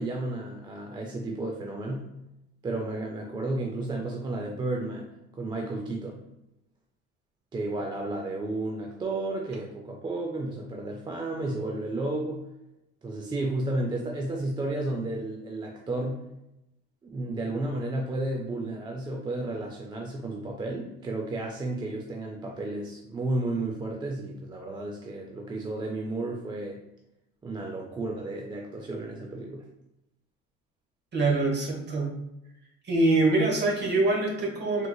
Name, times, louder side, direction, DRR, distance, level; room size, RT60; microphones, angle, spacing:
voice 1, 0.0-2.1 2.6-6.2 7.5-12.4 13.0-16.2 17.0-26.8 27.4-29.6, right 2 dB, 15° right, 0 dB, 0.3 m, -32 dB
voice 2, 31.1-32.1 32.9-34.9, right 2 dB, 35° right, 0 dB, 1.1 m, -24 dB
3.6 x 3.0 x 2.2 m, 0.88 s
cardioid pair, 120°, 30 cm